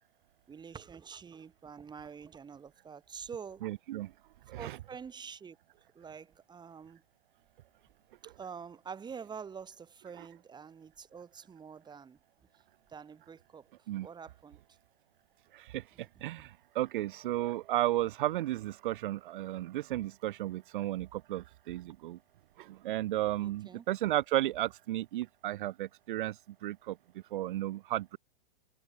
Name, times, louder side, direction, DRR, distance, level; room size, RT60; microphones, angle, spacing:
voice 1, 0.5-3.6 4.6-5.6 5.9-7.0 8.4-12.2 12.9-13.7 14.0-14.6 23.4-23.8, right 6 dB, 15° right, 5.9 m, -46 dB
voice 2, 3.6-4.1 4.5-4.8 8.2-8.3 10.2-10.3 13.9-14.1 15.5-22.2 22.6-28.2, right 15 dB, 60° right, 4.4 m, -34 dB
hypercardioid pair, 130°, 29 cm